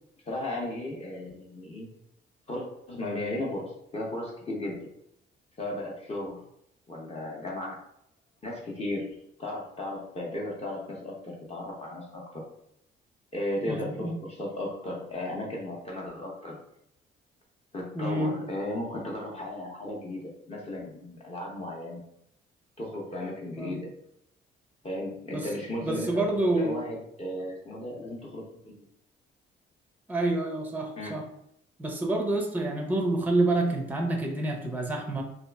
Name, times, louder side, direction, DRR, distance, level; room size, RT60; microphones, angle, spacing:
voice 1, 0.3-1.9 2.5-4.9 5.6-6.4 6.9-7.8 8.4-9.1 9.4-12.4 13.3-16.6 17.7-20.2 20.5-22.0 22.8-23.9 24.8-28.9 31.0-31.2, left 1 dB, 30° left, -3 dB, 0.7 m, -35 dB
voice 2, 13.7-14.2 17.9-18.4 23.6-23.9 25.3-25.5 25.8-26.8 30.1-31.3 31.8-35.2, right 2 dB, 10° right, 2 dB, 0.5 m, -28 dB
2.8 x 2.4 x 2.3 m, 0.74 s
cardioid pair, 90°, 20 cm